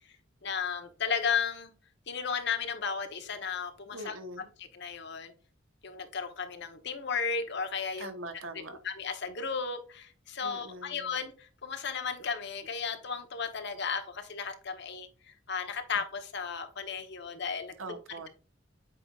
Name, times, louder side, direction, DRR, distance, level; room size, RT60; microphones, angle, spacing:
voice 1, 0.4-1.7 2.1-4.2 4.6-5.3 5.8-8.2 8.8-18.0, left 6 dB, 60° left, 1.1 m, -34 dB
voice 2, 3.9-4.5 8.0-8.8 10.4-11.1 17.8-18.3, right 1 dB, 90° right, 1.1 m, -42 dB
8.4 x 5.1 x 2.4 m
head